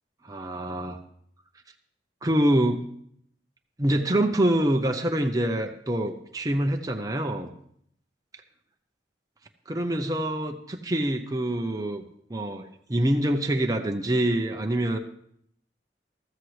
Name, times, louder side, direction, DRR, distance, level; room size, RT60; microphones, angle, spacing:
voice 1, 0.2-1.0 2.2-2.8 3.8-7.5 9.7-12.0 12.3-15.0, right 1 dB, 20° right, 3 dB, 0.7 m, -25 dB
14.0 x 13.5 x 3.2 m, 0.68 s
head